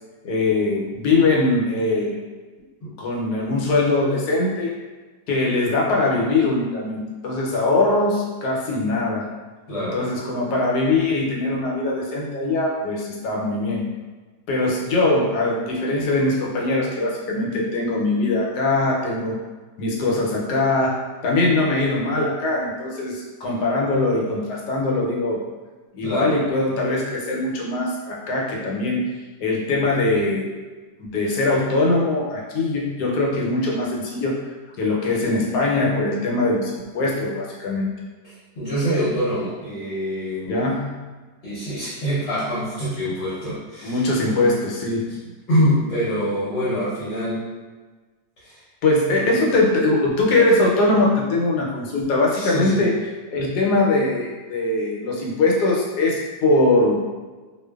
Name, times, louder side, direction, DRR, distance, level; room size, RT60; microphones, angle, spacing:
voice 1, 0.2-2.1 3.0-4.7 5.3-9.3 9.9-13.9 14.5-19.4 19.8-25.4 25.9-29.1 29.4-30.5 31.0-34.4 34.8-37.9 40.5-40.9 43.8-45.0 48.8-52.9 53.3-57.0, left 2 dB, 75° left, -3 dB, 1.2 m, -21 dB
voice 2, 9.7-10.0 26.0-26.4 38.2-40.7 41.4-44.4 45.1-45.2 45.5-47.4 48.4-48.6 49.1-49.4 52.3-52.9, equal, 55° left, -10 dB, 0.9 m, -25 dB
2.5 x 2.4 x 2.2 m, 1.3 s
omnidirectional pair, 1.8 m